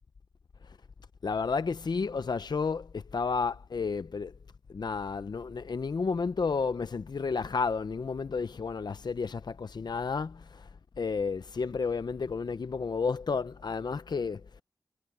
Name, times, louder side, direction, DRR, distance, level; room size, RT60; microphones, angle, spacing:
voice 1, 1.2-4.3 4.7-10.7 11.0-14.4, left 5 dB, 80° left, 0.6 m, -31 dB
wide cardioid pair, 60°, 7 cm